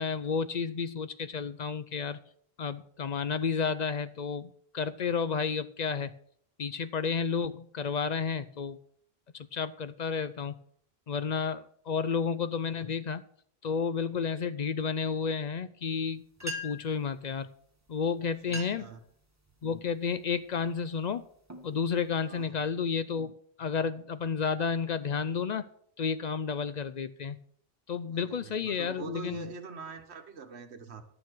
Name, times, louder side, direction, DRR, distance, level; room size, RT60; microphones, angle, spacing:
voice 1, 0.0-2.2 2.6-6.1 6.6-8.8 9.3-10.5 11.1-13.2 13.6-17.5 17.9-18.9 19.6-21.3 21.6-23.3 23.6-25.7 26.0-27.4 27.9-29.5, left 6 dB, 55° left, 14 dB, 0.5 m, -31 dB
sound 1, 16.1-16.2 16.4-17.0 17.9-18.0 18.4-19.0 19.4-19.8 20.4-20.7 21.2-22.5, equal, 15° right, 1.3 m, -41 dB
voice 2, 18.2-19.0 22.3-22.6 28.1-31.0, right 5 dB, 85° right, 8 dB, 1.4 m, -44 dB
11.0 x 7.1 x 6.1 m, 0.64 s
omnidirectional pair, 1.1 m